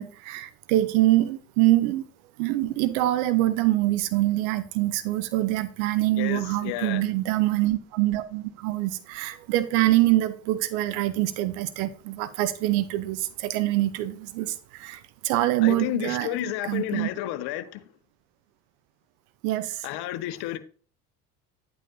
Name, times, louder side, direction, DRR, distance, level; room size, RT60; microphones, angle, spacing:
voice 1, 0.0-2.0 2.4-17.1 19.4-19.8, right 15 dB, 70° right, 0.9 m, -25 dB
voice 2, 6.2-7.1 15.6-17.8 19.8-20.6, left 14 dB, 60° left, 1.2 m, -31 dB
10.5 x 8.7 x 2.7 m
hypercardioid pair, 65°, 44 cm